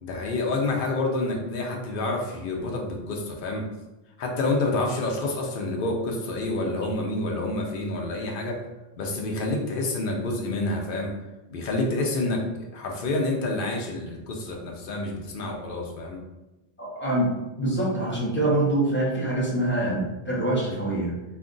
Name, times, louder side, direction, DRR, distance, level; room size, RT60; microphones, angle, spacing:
voice 1, 0.0-3.7 4.2-8.6 9.0-11.1 11.5-12.4 12.7-16.2, left 2 dB, 60° left, 1 dB, 0.7 m, -28 dB
voice 2, 16.8-21.1, right 1 dB, 15° left, -5 dB, 0.6 m, -25 dB
2.4 x 2.1 x 3.7 m, 1.0 s
omnidirectional pair, 1.1 m